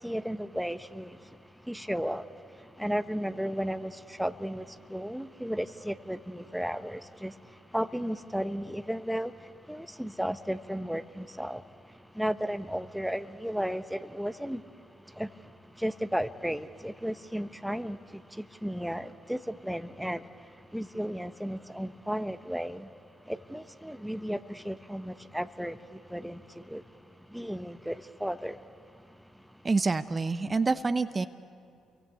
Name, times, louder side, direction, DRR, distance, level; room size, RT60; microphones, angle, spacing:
voice 1, 0.0-1.4 1.6-14.6 15.1-22.9 23.3-26.8 27.3-28.6, equal, ahead, 1.1 m, -34 dB
voice 2, 29.6-31.3, right 3 dB, 30° right, 1.0 m, -27 dB
30.0 x 23.5 x 8.5 m
hypercardioid pair, 50°, 0 cm